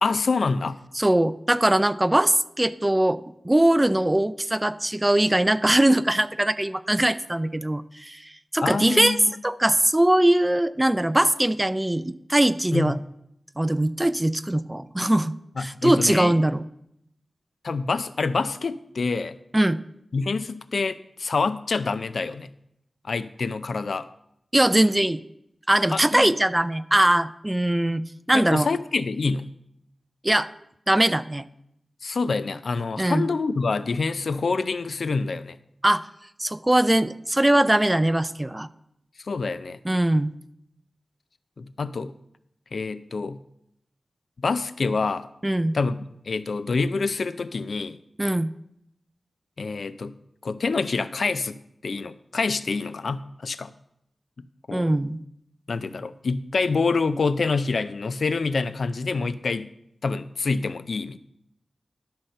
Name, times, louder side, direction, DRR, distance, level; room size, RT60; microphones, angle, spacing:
voice 1, 0.0-0.8 8.6-9.3 12.7-12.9 15.6-16.3 17.6-19.4 20.1-22.5 23.0-24.1 25.9-26.3 28.3-29.5 32.0-35.6 39.2-39.8 41.6-42.1 42.7-43.4 44.4-45.3 45.7-48.0 49.6-50.1 50.4-53.7 54.4-54.9 55.7-59.7 60.0-61.2, left 4 dB, 75° left, 13 dB, 0.4 m, -26 dB
voice 2, 1.0-13.0 13.6-15.3 15.6-16.6 19.5-19.8 24.5-25.2 25.7-28.0 28.3-28.7 30.2-30.5 30.9-31.4 33.0-33.2 35.8-36.1 36.4-38.7 39.8-40.4 45.4-45.8 48.2-48.5 54.7-55.2, right 1 dB, 15° right, 15 dB, 0.4 m, -21 dB
11.5 x 4.3 x 6.5 m, 0.77 s
wide cardioid pair, 90°, 0 cm